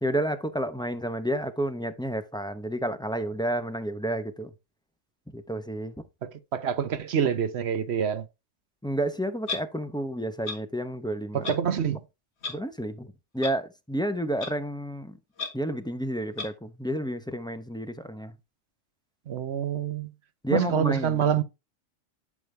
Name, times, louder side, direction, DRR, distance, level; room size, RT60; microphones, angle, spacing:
voice 1, 0.0-4.5 5.3-6.0 8.8-11.5 12.5-15.2 15.5-18.4 20.4-21.4, right 1 dB, 5° left, 0.5 m, -30 dB
voice 2, 6.2-8.2 11.3-12.0 19.3-20.1 20.5-21.4, right 8 dB, 60° right, 1.1 m, -26 dB
Clock, 9.5-9.6 10.4-10.6 11.4-11.6 12.4-12.5 13.4-13.5 14.4-14.5 15.4-15.5 16.4-16.5, left 4 dB, 60° left, 1.8 m, -32 dB
11.0 x 5.2 x 3.3 m
omnidirectional pair, 1.3 m